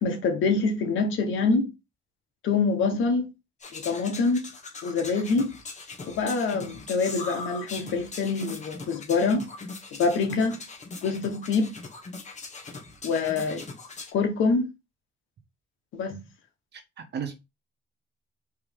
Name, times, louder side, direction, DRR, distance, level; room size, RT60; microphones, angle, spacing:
voice 1, 0.0-1.7 2.4-3.3 3.7-4.5 4.8-5.5 6.0-9.5 9.9-10.6 11.0-11.7 13.0-13.6 14.1-14.7 15.9-16.2, left 4 dB, 80° left, 1.3 m, -25 dB
sound 1, 3.6-14.1, left 3 dB, 35° left, 1.2 m, -41 dB
voice 2, 16.7-17.3, right 7 dB, 60° right, 1.2 m, -35 dB
4.7 x 3.2 x 3.5 m
cardioid pair, 90°, 20 cm